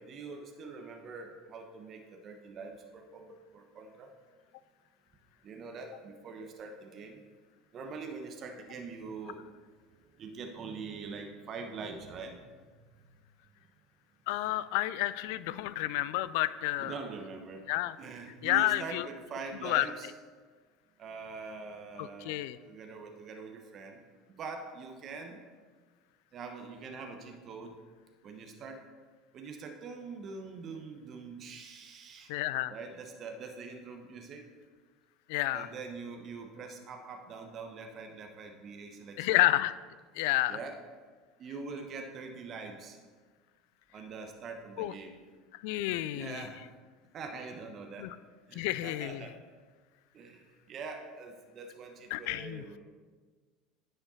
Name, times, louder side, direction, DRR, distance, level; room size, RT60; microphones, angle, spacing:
voice 1, 0.0-4.1 5.4-7.2 7.7-9.4 10.2-12.5 15.6-15.7 16.8-17.7 18.0-20.1 21.0-24.0 24.4-25.4 26.3-27.8 28.2-28.8 29.3-32.3 32.7-34.4 35.5-39.5 40.5-40.8 41.4-43.0 43.9-45.2 46.2-46.7 47.1-48.1 48.5-49.4 50.1-52.8, right 4 dB, 45° right, 4 dB, 1.1 m, -44 dB
voice 2, 14.3-16.9 17.7-18.0 18.4-19.1 19.6-19.9 22.0-22.6 32.3-32.7 35.3-35.7 39.2-39.8 40.2-40.6 44.8-44.9 45.6-46.4 48.0-48.1 48.5-49.2 52.1-52.6, left 16 dB, 70° left, 16 dB, 0.3 m, -30 dB
10.0 x 5.8 x 4.2 m, 1.5 s
hypercardioid pair, 75°, 0 cm